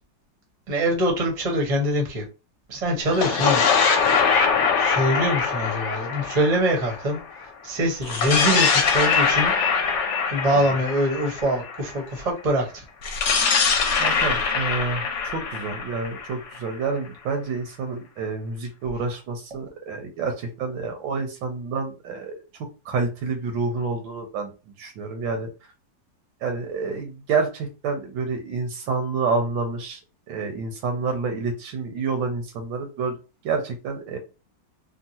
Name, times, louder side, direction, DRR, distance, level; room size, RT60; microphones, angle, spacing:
voice 1, 0.7-2.3 2.7-3.7 4.8-7.2 7.6-9.5 10.3-12.8, equal, 30° right, 0.8 m, -24 dB
sound 1, 3.0-7.4 8.0-12.0 13.0-16.8, left 5 dB, 65° left, 1.2 m, -23 dB
voice 2, 14.0-22.3 22.8-24.5 24.8-25.5 26.4-30.0 30.3-33.2 33.4-34.2, right 4 dB, 75° right, 1.4 m, -28 dB
3.6 x 2.3 x 2.8 m
omnidirectional pair, 2.1 m